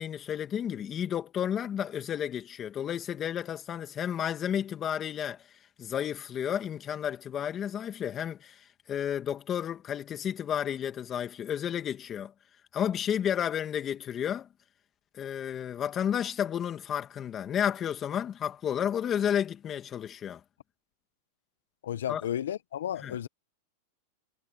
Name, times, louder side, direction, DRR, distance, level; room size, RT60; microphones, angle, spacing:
voice 1, 0.0-5.4 5.8-12.3 12.7-14.5 15.1-20.4 22.1-22.2 23.0-23.2, left 9 dB, 25° left, 2.3 m, -32 dB
voice 2, 21.8-23.3, left 10 dB, 85° left, 0.8 m, -33 dB
supercardioid pair, 135°, 0 cm